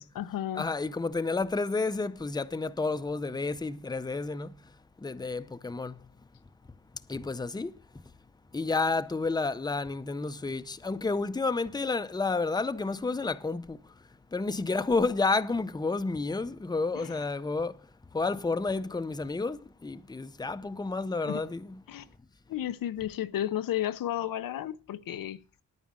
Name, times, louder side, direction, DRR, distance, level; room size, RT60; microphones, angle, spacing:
voice 1, 0.0-0.7 16.9-17.3 21.2-21.4 21.9-22.1 22.5-25.6, left 11 dB, 90° left, 0.7 m, -33 dB
voice 2, 0.5-4.5 5.0-5.9 7.1-7.7 8.5-13.8 14.3-17.7 18.1-21.8, left 3 dB, 10° left, 0.6 m, -30 dB
9.8 x 9.4 x 6.2 m
cardioid pair, 75°, 33 cm